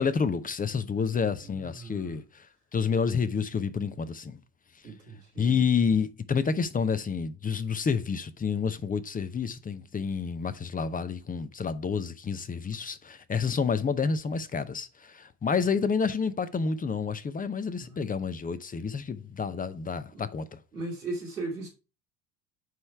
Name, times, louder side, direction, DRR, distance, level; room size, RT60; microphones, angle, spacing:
voice 1, 0.0-2.5 2.7-4.4 5.4-20.6, left 6 dB, 20° left, 0.7 m, -29 dB
voice 2, 1.0-2.2 4.8-5.6 17.7-18.0 20.1-20.3 20.7-21.7, right 2 dB, 85° right, 2.4 m, -38 dB
9.3 x 3.3 x 4.5 m
figure-of-eight pair, 60°, 45 cm